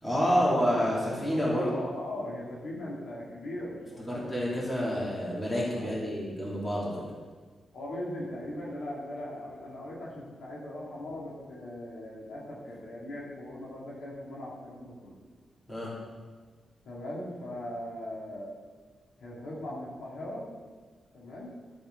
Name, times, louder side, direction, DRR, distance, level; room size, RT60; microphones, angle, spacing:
voice 1, 0.0-1.7 4.0-7.1 15.7-15.9, equal, 15° left, -6 dB, 2.8 m, -28 dB
voice 2, 1.3-4.3 5.7-5.9 6.8-7.0 7.7-15.1 16.8-18.5 19.2-20.5 21.1-21.5, left 1 dB, 85° left, -5 dB, 2.7 m, -39 dB
12.0 x 7.1 x 3.9 m, 1.5 s
wide cardioid pair, 135°, 0 cm